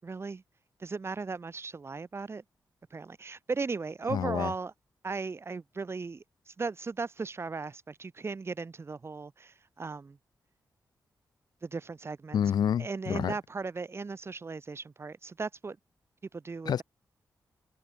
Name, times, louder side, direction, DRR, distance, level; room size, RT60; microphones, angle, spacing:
voice 1, 0.0-0.4 0.8-2.4 2.9-4.7 5.0-10.2 11.6-12.4 12.8-15.8 16.3-16.8, right 4 dB, 40° right, 4.4 m, -37 dB
voice 2, 4.1-4.5 12.3-13.3 16.7-16.8, left 9 dB, 80° left, 0.7 m, -28 dB
wide cardioid pair, 105°, 7 cm